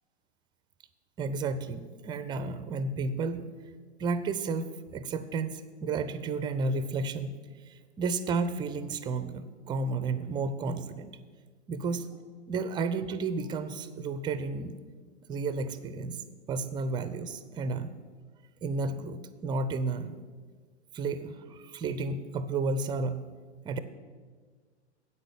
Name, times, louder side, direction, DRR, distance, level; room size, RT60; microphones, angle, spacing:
voice 1, 1.2-3.4 4.0-7.3 7.7-11.1 11.7-12.1 12.5-14.7 15.3-16.2 16.5-17.9 18.6-20.1 20.9-23.3 23.6-23.8, right 4 dB, 15° right, 13 dB, 0.5 m, -32 dB
8.9 x 8.4 x 7.1 m, 1.5 s
figure-of-eight pair, 100°, 34 cm